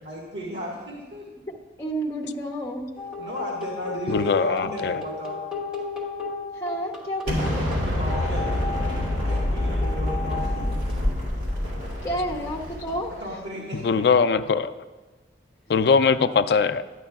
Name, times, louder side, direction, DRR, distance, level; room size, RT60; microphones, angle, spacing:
voice 1, 0.0-1.3 3.2-5.4 7.8-8.6 9.2-10.9 13.1-14.4, equal, 85° right, -4 dB, 1.5 m, -35 dB
voice 2, 1.5-3.0 6.5-7.6 12.0-13.1, equal, 15° left, -1 dB, 0.7 m, -30 dB
sound 1, 3.0-11.0 12.9-13.0, left 5 dB, 5° right, 1.1 m, -35 dB
voice 3, 4.1-5.0 13.8-14.7 15.7-16.8, left 5 dB, 65° left, 11 dB, 0.3 m, -21 dB
Explosion, 7.3-13.3, left 1 dB, 70° right, 2.6 m, -27 dB
11.0 x 9.5 x 2.3 m, 1.3 s
head